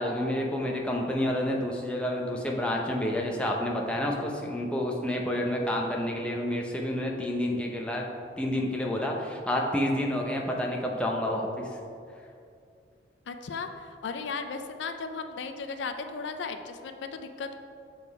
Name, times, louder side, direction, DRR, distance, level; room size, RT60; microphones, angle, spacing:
voice 1, 0.0-8.0 8.4-11.7, left 1 dB, 5° left, -1 dB, 0.6 m, -29 dB
voice 2, 13.3-17.5, left 4 dB, 85° left, 8 dB, 0.4 m, -36 dB
7.3 x 3.9 x 4.7 m, 2.4 s
head